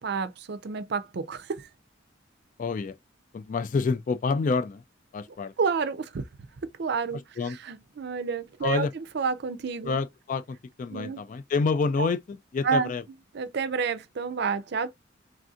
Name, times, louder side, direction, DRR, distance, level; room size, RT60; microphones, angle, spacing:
voice 1, 0.0-1.7 5.6-6.2 6.6-8.9 9.1-9.9 10.9-11.2 12.0-12.1 12.6-12.9 13.3-14.9, right 5 dB, 60° right, 0.5 m, -29 dB
voice 2, 2.6-3.0 3.3-4.8 5.1-5.5 7.4-7.6 8.6-8.9 9.9-13.0, left 4 dB, 45° left, 0.3 m, -28 dB
3.5 x 2.7 x 2.3 m
head